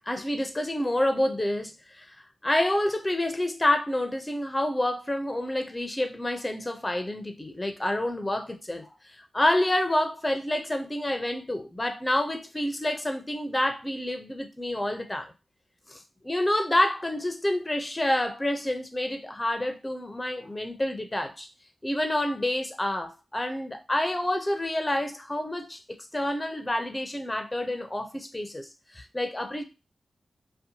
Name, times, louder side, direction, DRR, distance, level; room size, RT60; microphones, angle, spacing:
voice 1, 0.1-2.1 2.4-8.9 9.3-15.3 15.9-21.5 21.8-25.8 26.1-28.7 28.9-29.6, left 1 dB, 20° left, 0.5 m, -28 dB
2.7 x 2.2 x 2.6 m
cardioid pair, 50°, 0 cm